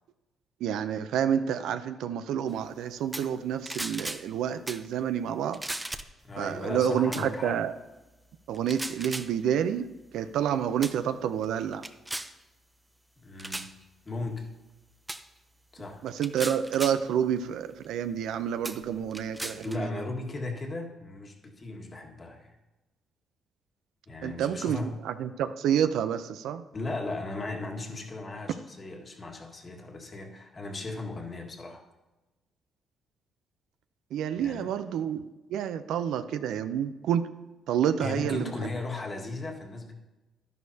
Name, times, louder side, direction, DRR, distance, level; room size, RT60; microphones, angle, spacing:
voice 1, 0.6-5.6 6.4-7.7 8.5-9.9 10.1-11.8 16.0-20.0 24.2-26.6 34.1-37.3 37.7-38.7, right 9 dB, 85° right, 11 dB, 0.5 m, -29 dB
sound 1, 3.1-3.4 3.7-4.3 4.7-4.9 5.5-6.2 7.1-7.3 8.5-9.3 10.2-10.4 10.8-11.0 11.4-12.3 13.4-13.7 15.1-15.2 16.1-17.0 17.8-17.9 18.6-19.8, right 1 dB, 10° right, 0.6 m, -37 dB
voice 2, 6.2-7.6 13.2-13.7 14.1-14.5 15.7-16.0 19.6-22.6 24.1-25.0 26.7-31.8 34.4-34.7 38.0-39.9, left 2 dB, 35° left, 1 dB, 1.7 m, -37 dB
11.5 x 11.0 x 2.8 m, 1.1 s
cardioid pair, 90°, 0 cm